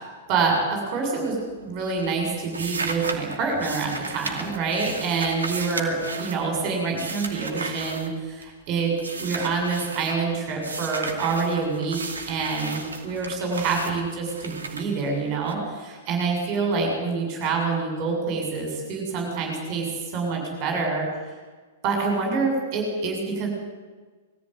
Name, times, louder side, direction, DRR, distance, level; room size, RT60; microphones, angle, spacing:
voice 1, 0.3-8.9 9.2-12.0 12.3-21.1 21.8-23.5, right 4 dB, 40° right, 2 dB, 7.2 m, -26 dB
sound 1, 1.2-1.6 1.9-8.6 9.0-10.2 10.6-15.5, right 3 dB, 75° right, 2.5 m, -35 dB
21.5 x 14.5 x 9.7 m, 1.4 s
figure-of-eight pair, 105°, 0 cm